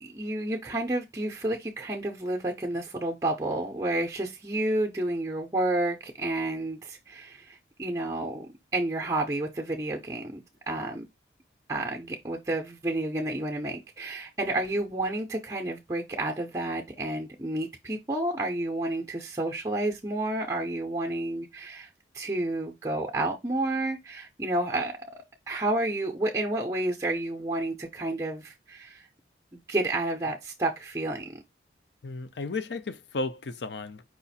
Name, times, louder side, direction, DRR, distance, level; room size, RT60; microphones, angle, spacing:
voice 1, 0.0-11.0 11.7-21.9 22.1-29.1 29.5-31.4, right 2 dB, 20° right, 0.5 m, -30 dB
voice 2, 32.0-34.0, left 3 dB, 70° left, 0.5 m, -34 dB
4.9 x 2.5 x 4.1 m
head